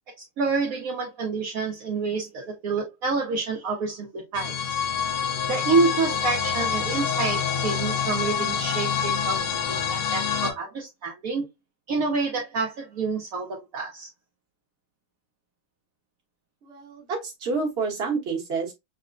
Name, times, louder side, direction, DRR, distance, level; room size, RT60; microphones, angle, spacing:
voice 1, 0.4-4.8 5.5-11.4 11.9-14.1, right 4 dB, 65° right, 0.9 m, -28 dB
sound 1, 4.3-10.5, left 7 dB, 80° left, 1.6 m, -26 dB
voice 2, 16.6-18.7, right 4 dB, 40° right, 1.0 m, -29 dB
5.8 x 2.1 x 2.5 m
omnidirectional pair, 2.3 m